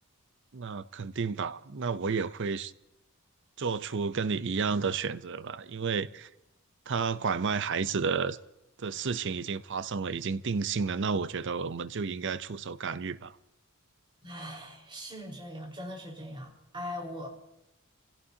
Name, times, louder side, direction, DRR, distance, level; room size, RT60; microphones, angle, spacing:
voice 1, 0.5-2.7 3.6-6.3 6.9-8.4 8.8-13.3, right 5 dB, 60° right, 0.6 m, -31 dB
voice 2, 14.2-17.3, left 1 dB, 25° right, 4.7 m, -40 dB
29.5 x 16.5 x 2.8 m
head